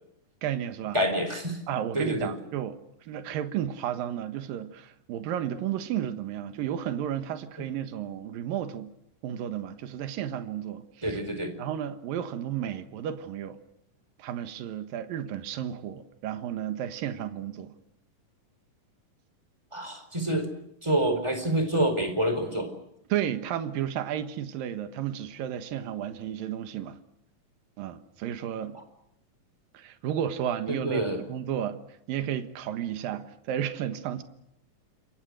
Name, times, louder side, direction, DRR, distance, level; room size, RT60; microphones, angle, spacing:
voice 1, 0.4-1.0 1.7-8.9 9.2-11.2 11.6-13.6 14.2-17.7 23.1-27.0 27.8-28.8 29.7-31.8 32.1-34.2, right 10 dB, 80° right, 3.1 m, -33 dB
voice 2, 0.9-1.6 1.9-2.4 11.0-11.5 19.7-20.5 20.8-22.7 30.7-31.2, right 1 dB, 10° right, 4.0 m, -27 dB
28.5 x 22.5 x 6.4 m
omnidirectional pair, 4.1 m